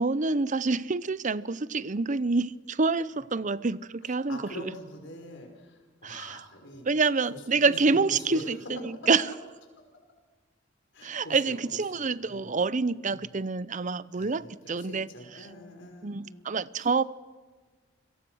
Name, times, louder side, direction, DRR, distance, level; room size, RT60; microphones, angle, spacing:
voice 1, 0.0-4.4 6.0-6.4 6.8-9.2 11.0-15.1 16.0-17.0, right 4 dB, 40° right, 0.7 m, -27 dB
voice 2, 4.0-6.8 7.3-8.4 10.9-12.6 13.1-13.3 14.1-16.5 16.8-16.9, left 1 dB, 65° left, 5.3 m, -45 dB
29.0 x 23.0 x 6.4 m
head